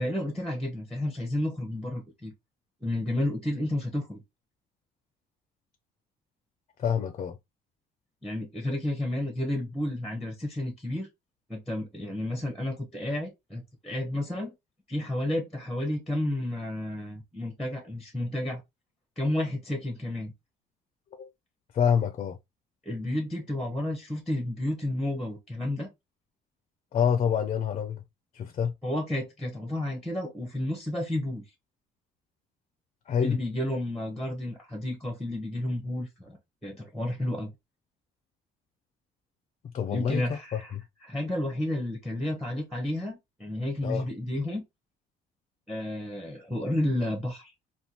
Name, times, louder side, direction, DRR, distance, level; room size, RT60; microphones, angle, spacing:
voice 1, 0.0-2.3 2.8-4.2 8.2-11.1 11.5-14.5 14.9-18.6 19.2-20.3 22.9-25.9 28.8-31.4 33.2-36.4 36.6-37.5 39.9-40.7 41.0-44.6 45.7-47.5, left 1 dB, ahead, 0.7 m, -31 dB
voice 2, 6.8-7.4 21.2-21.3 21.7-22.4 26.9-28.0 28.3-28.7 33.1-33.4 39.7-40.4 40.7-40.8 43.8-44.1, left 7 dB, 40° left, 0.4 m, -27 dB
3.5 x 2.3 x 2.7 m
cardioid pair, 110°, 17 cm